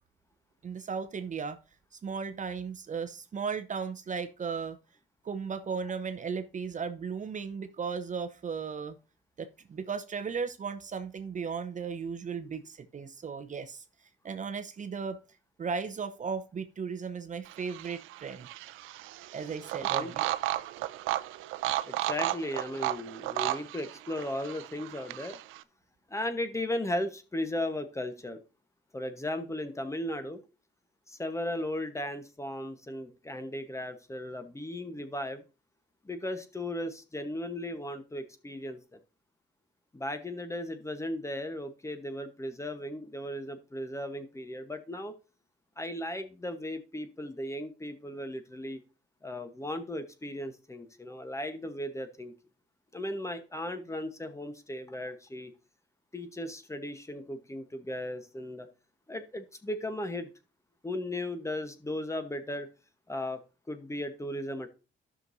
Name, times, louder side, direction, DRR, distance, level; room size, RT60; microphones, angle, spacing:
voice 1, 0.6-1.6 2.0-4.8 5.2-9.0 9.4-13.8 14.2-15.2 15.6-18.5 19.3-20.4, right 5 dB, 40° right, 0.7 m, -36 dB
sound 1, 17.5-25.6, right 15 dB, 90° right, 0.5 m, -34 dB
voice 2, 19.8-20.1 21.8-25.4 26.1-28.4 28.9-30.4 31.1-35.4 36.0-39.0 39.9-45.1 45.8-48.8 49.2-52.3 52.9-55.5 56.1-58.7 59.1-60.3 60.8-62.7 63.1-63.4 63.7-64.7, left 1 dB, 15° left, 1.1 m, -36 dB
13.5 x 6.0 x 2.7 m
cardioid pair, 90°, 20 cm